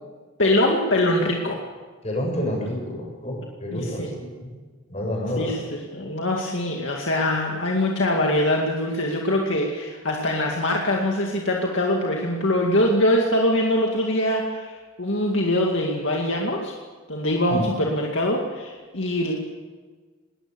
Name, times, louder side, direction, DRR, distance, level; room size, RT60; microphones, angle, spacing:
voice 1, 0.4-1.6 3.7-4.1 5.4-16.7 17.1-19.3, left 1 dB, 65° left, 0 dB, 2.3 m, -23 dB
voice 2, 2.0-4.1 4.4-4.5 4.9-5.5 6.0-6.1 17.5-17.8, left 1 dB, 35° left, 0 dB, 6.9 m, -28 dB
21.5 x 19.0 x 7.0 m, 1.5 s
head